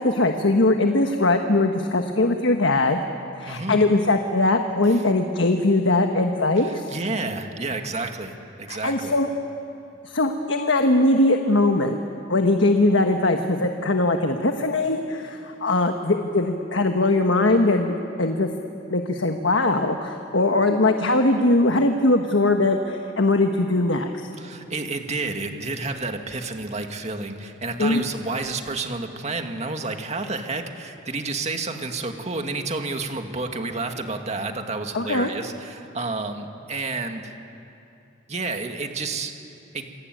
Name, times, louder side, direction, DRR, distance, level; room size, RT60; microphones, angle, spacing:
voice 1, 0.0-3.0 3.4-6.9 8.7-9.3 10.0-12.0 12.3-18.5 18.9-24.3 27.8-28.0 34.9-35.3, left 2 dB, 75° left, 5 dB, 1.5 m, -21 dB
voice 2, 3.5-3.8 4.9-5.1 6.6-9.1 24.4-37.3 38.3-39.3 39.7-39.9, right 3 dB, 35° right, 5 dB, 2.1 m, -30 dB
28.0 x 22.5 x 9.3 m, 2.8 s
head